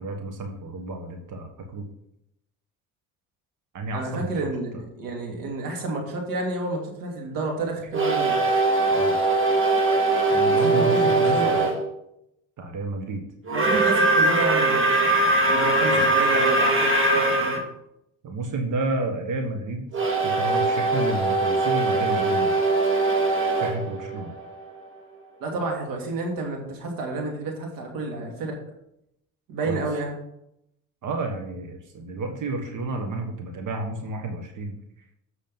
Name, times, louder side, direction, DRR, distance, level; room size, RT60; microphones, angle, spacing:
voice 1, 0.0-1.8 3.7-4.3 8.9-9.1 10.3-11.6 12.6-13.2 15.9-16.1 18.2-19.9 20.2-22.5 23.6-24.3 29.6-29.8 31.0-34.7, right 2 dB, 65° right, 4 dB, 1.5 m, -31 dB
voice 2, 3.9-8.4 10.4-11.6 13.5-17.6 25.4-28.6 29.5-30.2 32.1-32.2, right 2 dB, 90° right, 1 dB, 2.6 m, -30 dB
sound 1, 7.9-11.8 13.5-17.6 19.9-24.8, right 2 dB, 40° right, 2.1 m, -21 dB
7.9 x 6.2 x 5.5 m, 0.78 s
supercardioid pair, 75°, 34 cm